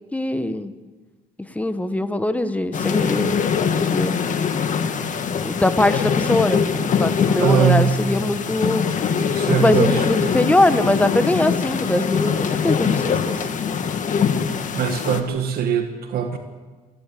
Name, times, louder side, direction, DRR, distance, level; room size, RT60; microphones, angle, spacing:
voice 1, 0.1-0.7 1.5-3.4 3.7-4.2 5.4-6.6 7.0-8.9 9.5-13.4, left 1 dB, 10° left, 11 dB, 1.2 m, -21 dB
sound 1, 2.7-15.2, left 6 dB, 50° left, 1.8 m, -22 dB
voice 2, 7.4-8.0 9.3-10.3 14.7-16.4, right 7 dB, 65° right, 5 dB, 1.8 m, -21 dB
28.5 x 11.0 x 8.5 m, 1.3 s
cardioid pair, 110°, 17 cm